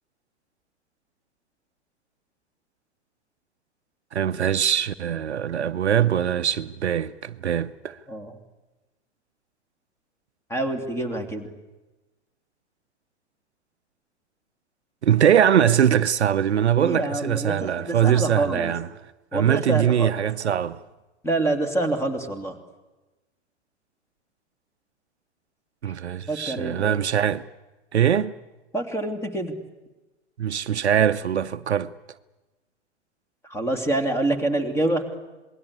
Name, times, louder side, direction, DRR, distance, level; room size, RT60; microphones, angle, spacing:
voice 1, 4.1-8.0 15.0-18.9 19.3-20.8 25.8-27.4 27.9-28.3 30.4-31.9, right 9 dB, 65° right, 0.8 m, -22 dB
voice 2, 8.1-8.4 10.5-11.5 16.8-18.7 19.3-20.1 21.2-22.6 25.8-25.9 26.3-27.0 28.7-29.6 33.4-35.0, right 2 dB, 5° left, 2.5 m, -26 dB
27.5 x 21.0 x 8.4 m
figure-of-eight pair, 100°, 35 cm